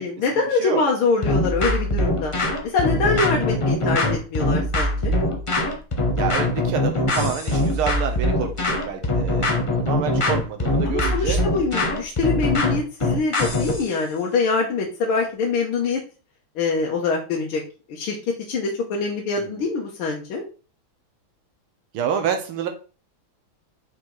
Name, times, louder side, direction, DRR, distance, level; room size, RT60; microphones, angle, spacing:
voice 1, 0.0-2.3 2.6-5.1 10.9-16.0 16.6-17.6 17.9-18.2 18.5-20.4, left 4 dB, 80° left, -1 dB, 1.9 m, -24 dB
voice 2, 0.5-0.8 6.1-11.4 11.7-11.8 19.4-19.6 21.9-22.7, right 7 dB, 85° right, 5 dB, 1.8 m, -28 dB
sound 1, 1.2-13.9, left 1 dB, 45° left, 0.4 m, -22 dB
6.0 x 4.7 x 3.9 m, 0.36 s
omnidirectional pair, 2.3 m